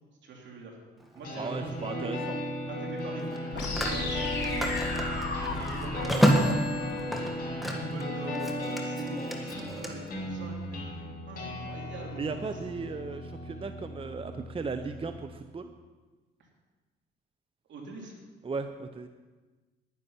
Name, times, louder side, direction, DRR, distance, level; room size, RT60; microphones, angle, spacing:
voice 1, 0.2-0.8 1.1-2.1 2.7-4.1 4.7-7.3 7.6-12.6 17.7-18.2, right 3 dB, 70° right, 0 dB, 3.1 m, -43 dB
Telephone, 1.0-1.2 3.2-8.0 8.3-9.9, equal, ahead, 1.9 m, -30 dB
sound 1, 1.2-15.2, left 1 dB, 50° left, 4.7 m, -36 dB
voice 2, 1.3-2.4 12.2-15.7 18.4-19.1, right 4 dB, 25° right, 8 dB, 0.7 m, -36 dB
sound 2, 3.5-7.5, left 3 dB, 65° left, 4.3 m, -35 dB
11.0 x 10.0 x 5.7 m, 1.3 s
cardioid pair, 90°, 20 cm